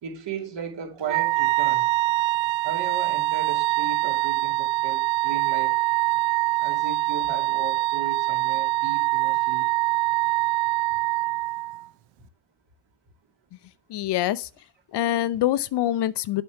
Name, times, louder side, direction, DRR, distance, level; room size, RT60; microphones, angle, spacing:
voice 1, 0.0-1.9 2.6-5.8 6.6-9.7, right 6 dB, 60° right, 2.6 m, -36 dB
Wind instrument woodwind instrument, 1.0-11.8, right 18 dB, 75° right, 0.7 m, -24 dB
voice 2, 13.9-14.5 14.9-16.4, left 13 dB, 55° left, 0.6 m, -25 dB
8.0 x 5.2 x 4.6 m
hypercardioid pair, 55°, 49 cm